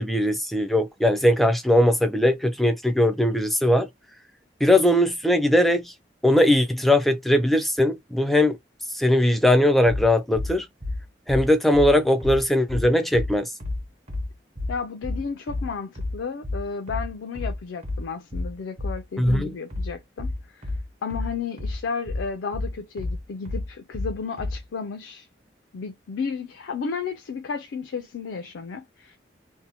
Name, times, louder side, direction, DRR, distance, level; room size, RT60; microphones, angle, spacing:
voice 1, 0.0-3.9 4.6-5.9 6.2-8.6 8.9-10.7 11.3-13.5 19.2-19.6, left 1 dB, ahead, 0.3 m, -20 dB
sound 1, 9.8-24.6, left 2 dB, 35° right, 0.7 m, -30 dB
voice 2, 14.7-20.7 21.0-25.3 25.7-29.2, left 5 dB, 85° left, 0.4 m, -33 dB
2.7 x 2.0 x 2.7 m
head